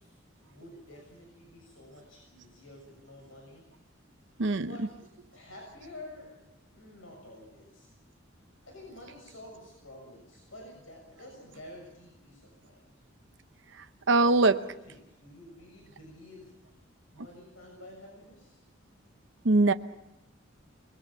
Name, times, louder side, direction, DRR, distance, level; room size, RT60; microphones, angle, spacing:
voice 1, 0.0-3.7 4.6-4.9 5.3-6.3 6.7-7.9 8.6-12.8 14.3-16.5 17.1-18.6, left 1 dB, 90° left, 0 dB, 6.8 m, -50 dB
voice 2, 14.1-14.6 19.4-19.7, right 3 dB, 65° right, 9 dB, 0.8 m, -21 dB
28.5 x 21.5 x 5.7 m, 0.95 s
head